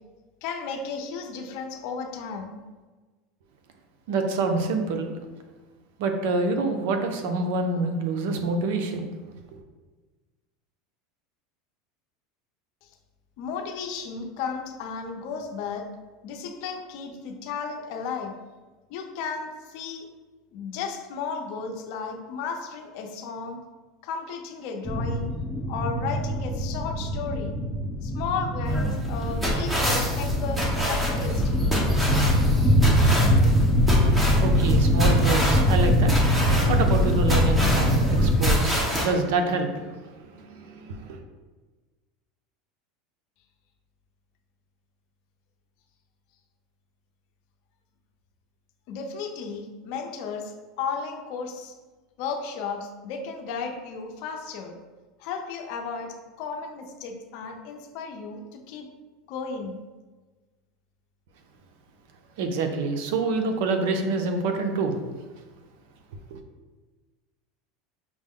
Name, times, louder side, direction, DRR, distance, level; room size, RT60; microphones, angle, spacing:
voice 1, 0.4-2.6 12.8-12.9 13.4-15.9 16.2-18.3 18.9-20.1 20.5-23.6 24.0-25.3 25.7-27.5 28.0-31.5 48.9-51.8 52.2-54.7 55.2-58.9 59.3-59.8, left 5 dB, 65° left, 4 dB, 0.6 m, -34 dB
voice 2, 4.1-5.1 6.0-9.1 34.4-36.1 36.7-39.7 40.0-41.2 62.4-65.0 66.3-66.4, right 3 dB, 75° right, 5 dB, 0.6 m, -26 dB
sound 1, 24.8-38.4, equal, 10° left, 0.7 m, -23 dB
sound 2, 28.7-39.1, left 1 dB, 10° right, 1.0 m, -26 dB
6.0 x 2.1 x 3.6 m, 1.3 s
supercardioid pair, 130°, 0 cm